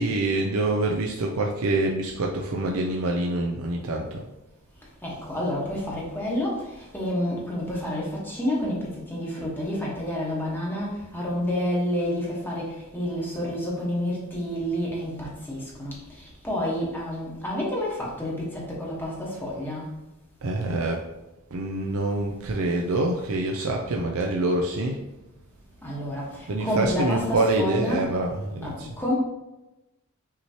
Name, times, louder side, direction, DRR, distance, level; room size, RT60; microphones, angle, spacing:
voice 1, 0.0-4.2 20.4-21.0 21.5-25.0 26.5-28.9, right 2 dB, 75° right, 1 dB, 0.5 m, -26 dB
voice 2, 5.0-6.6 6.9-12.6 12.9-15.9 16.4-19.9 25.8-26.3 26.6-28.1 28.6-29.1, left 1 dB, 10° left, -5 dB, 1.2 m, -29 dB
5.8 x 3.0 x 2.8 m, 0.97 s
head